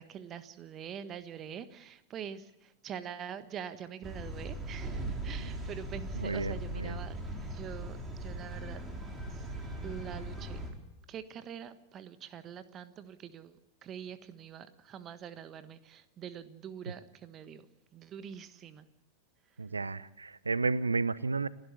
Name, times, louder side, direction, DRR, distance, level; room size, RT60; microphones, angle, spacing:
voice 1, 0.0-8.8 9.3-9.5 9.8-10.6 11.1-17.7 17.9-18.9, right 8 dB, 30° right, 13 dB, 1.4 m, -44 dB
sound 1, 4.0-10.7, right 1 dB, 15° right, 4.5 m, -39 dB
voice 2, 6.1-7.0 19.6-21.5, right 4 dB, 80° right, 20 dB, 0.7 m, -32 dB
29.5 x 12.0 x 8.3 m, 0.89 s
figure-of-eight pair, 90°, 0 cm